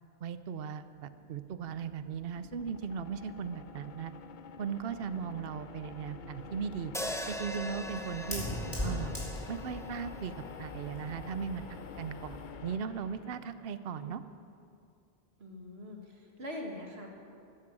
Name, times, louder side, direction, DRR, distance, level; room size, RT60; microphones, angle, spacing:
voice 1, 0.2-4.1 4.6-6.9 7.3-8.4 8.8-9.2 9.5-10.3 10.6-14.2, right 7 dB, 70° right, 12 dB, 0.9 m, -38 dB
sound 1, 1.0-14.0, left 6 dB, 55° left, 0.7 m, -48 dB
Fire, 6.4-12.5, left 1 dB, 25° left, 4.2 m, -41 dB
sound 2, 6.9-11.2, left 1 dB, 5° left, 0.6 m, -41 dB
voice 2, 15.4-17.1, left 1 dB, 85° right, 0 dB, 2.4 m, -43 dB
16.0 x 14.0 x 6.1 m, 2.4 s
omnidirectional pair, 1.0 m